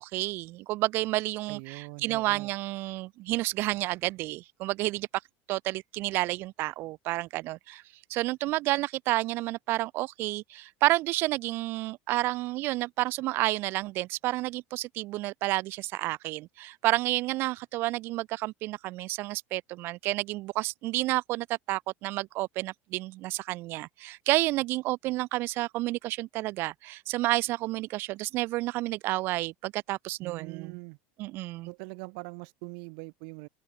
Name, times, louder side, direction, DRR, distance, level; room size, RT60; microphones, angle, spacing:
voice 1, 0.0-5.1 5.5-7.8 8.1-30.8 31.2-31.7, right 18 dB, 45° right, 0.4 m, -30 dB
voice 2, 1.5-2.5 30.2-31.0 31.7-33.5, right 40 dB or more, 65° right, 2.0 m, -42 dB
supercardioid pair, 150°, 5 cm